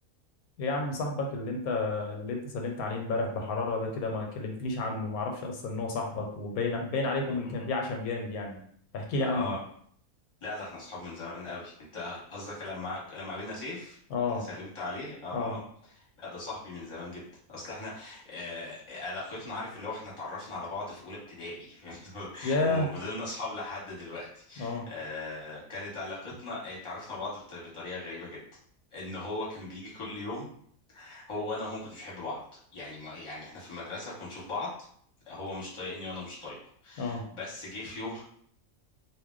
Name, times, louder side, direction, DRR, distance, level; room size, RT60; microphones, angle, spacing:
voice 1, 0.6-8.6 8.9-9.6 14.1-14.5 15.3-15.6 22.4-22.9 24.6-24.9 37.0-37.3, left 3 dB, 90° left, 2 dB, 1.1 m, -31 dB
voice 2, 9.3-9.6 10.4-14.0 14.3-15.6 16.0-28.4 28.9-30.5 30.9-34.7 35.3-36.6 36.8-38.2, left 2 dB, 25° left, -6 dB, 1.0 m, -39 dB
2.5 x 2.1 x 3.6 m, 0.63 s
omnidirectional pair, 1.5 m